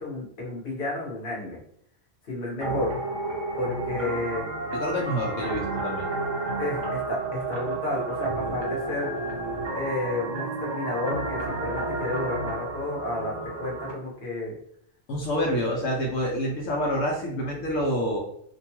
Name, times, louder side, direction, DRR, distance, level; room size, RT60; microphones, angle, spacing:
voice 1, 0.0-1.6 2.2-2.9 3.6-4.5 6.6-9.1 9.7-14.5, left 2 dB, 50° left, -3 dB, 1.1 m, -31 dB
sound 1, 2.6-13.9, right 2 dB, 70° right, 1.1 m, -31 dB
voice 2, 4.7-6.1 15.1-18.2, equal, 80° left, -1 dB, 1.0 m, -27 dB
2.6 x 2.2 x 2.8 m, 0.68 s
omnidirectional pair, 1.3 m